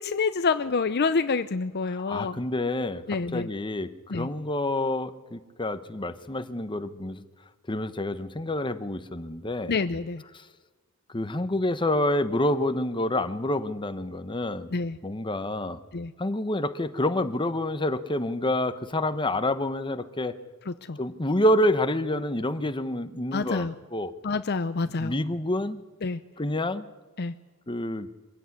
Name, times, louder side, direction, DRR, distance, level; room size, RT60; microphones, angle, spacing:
voice 1, 0.0-2.4 3.1-3.5 4.1-4.3 9.7-10.2 14.7-15.0 15.9-16.1 20.7-21.0 23.3-23.7 24.2-25.2 26.0-26.2 27.2-27.3, left 4 dB, 50° left, 11 dB, 0.6 m, -27 dB
voice 2, 2.1-3.0 3.3-7.2 7.7-9.7 11.1-14.7 15.0-15.8 16.2-20.3 21.0-23.7 23.9-24.1 24.9-25.8 26.4-26.8 27.7-28.1, left 1 dB, 20° left, 11 dB, 1.0 m, -28 dB
24.0 x 16.5 x 9.6 m, 1.4 s
head